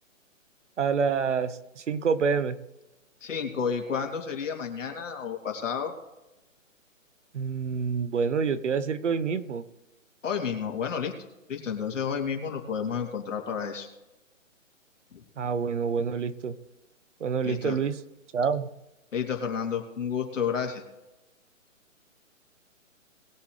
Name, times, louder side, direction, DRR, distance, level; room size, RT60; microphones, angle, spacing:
voice 1, 0.8-2.6 7.3-9.6 15.4-16.5 17.2-17.9 18.3-18.7, right 6 dB, 65° right, 13 dB, 1.1 m, -27 dB
voice 2, 3.2-5.9 10.2-11.1 11.5-13.9 15.1-15.2 17.4-17.8 19.1-20.8, left 7 dB, 65° left, 2 dB, 3.1 m, -31 dB
21.0 x 7.3 x 3.3 m, 0.99 s
hypercardioid pair, 165°, 40 cm